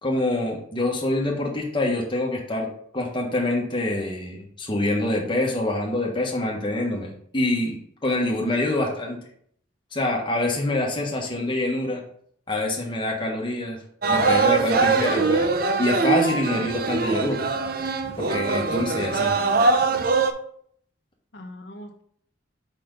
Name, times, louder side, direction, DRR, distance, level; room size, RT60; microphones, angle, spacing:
voice 1, 0.0-2.7 2.9-9.2 9.9-12.0 12.5-13.8 14.1-17.4 18.2-19.4, left 1 dB, 25° left, -1 dB, 1.3 m, -26 dB
sound 1, 14.0-20.3, right 4 dB, 45° right, 0.5 m, -22 dB
voice 2, 21.3-22.0, left 1 dB, 55° left, 4 dB, 0.9 m, -43 dB
5.1 x 4.3 x 5.2 m, 0.64 s
head